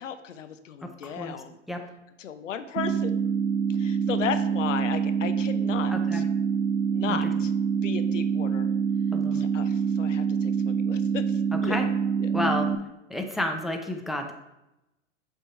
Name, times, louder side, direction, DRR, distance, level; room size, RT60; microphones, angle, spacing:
voice 1, 0.0-1.6 2.2-3.2 3.7-6.2 6.9-7.5 7.8-8.7 9.3-11.9 12.2-12.3, left 8 dB, 80° left, 10 dB, 0.7 m, -35 dB
voice 2, 0.8-1.8 5.9-6.2 7.1-7.3 9.1-9.4 11.5-11.9 12.3-12.7 13.1-14.3, left 1 dB, ahead, 3 dB, 0.6 m, -31 dB
sound 1, 2.8-12.8, right 7 dB, 65° right, 0.7 m, -26 dB
7.3 x 3.5 x 4.4 m, 0.93 s
hypercardioid pair, 100°, 37 cm